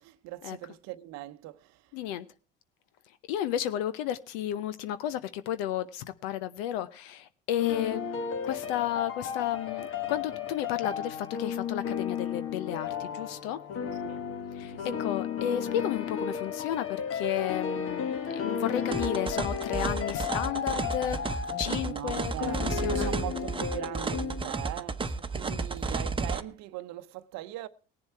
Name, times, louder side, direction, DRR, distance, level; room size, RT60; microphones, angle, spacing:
voice 1, 0.0-1.9 13.8-14.2 14.7-15.0 21.8-27.7, right 15 dB, 65° right, 0.8 m, -40 dB
voice 2, 1.9-2.3 3.3-8.0 8.4-13.6 14.5-23.1, left 11 dB, 90° left, 0.7 m, -33 dB
sound 1, 7.6-24.5, left 7 dB, 50° left, 1.5 m, -34 dB
sound 2, 18.9-26.4, right 4 dB, 20° right, 0.9 m, -32 dB
19.0 x 7.2 x 4.5 m
supercardioid pair, 90°, 29 cm